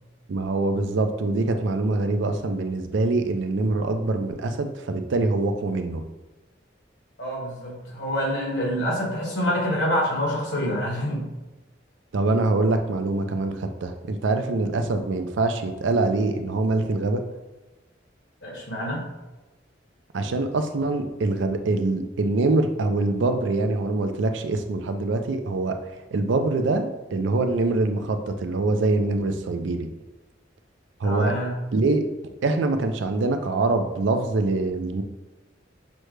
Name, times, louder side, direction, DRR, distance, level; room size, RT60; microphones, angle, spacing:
voice 1, 0.3-6.0 12.1-17.2 20.1-25.8 26.1-29.9 31.0-31.3 31.7-32.0 32.4-35.0, right 2 dB, 75° right, 7 dB, 0.4 m, -24 dB
voice 2, 7.2-11.4 18.4-19.0 31.0-31.6, equal, 70° left, -3 dB, 1.4 m, -26 dB
6.2 x 2.1 x 3.1 m, 1.1 s
head